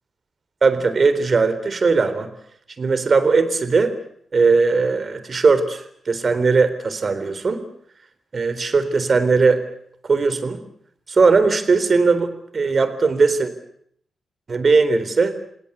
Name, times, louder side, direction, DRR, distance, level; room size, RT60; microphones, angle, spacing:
voice 1, 0.6-2.3 2.8-3.9 4.3-7.6 8.3-9.6 10.1-10.6 11.1-13.5 14.5-15.4, right 4 dB, 50° right, 11 dB, 3.8 m, -18 dB
29.0 x 18.0 x 8.3 m, 0.68 s
supercardioid pair, 40°, 0 cm